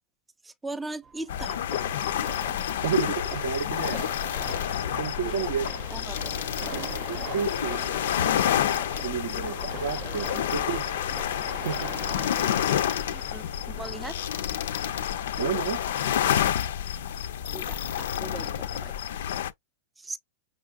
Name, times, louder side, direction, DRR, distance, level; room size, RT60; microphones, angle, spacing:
voice 1, 0.4-1.6 5.2-5.5 5.9-6.3 13.1-14.2 17.5-18.9 20.0-20.2, right 2 dB, 10° right, 0.3 m, -39 dB
sound 1, 1.0-16.4, right 7 dB, 35° right, 0.7 m, -43 dB
sound 2, 1.3-19.5, left 10 dB, 75° left, 0.3 m, -29 dB
voice 2, 2.8-4.0 5.0-6.0 6.7-8.0 9.0-10.9 11.6-12.0 15.4-15.8, right 7 dB, 70° right, 0.5 m, -31 dB
5.7 x 2.4 x 2.3 m
hypercardioid pair, 110°, 0 cm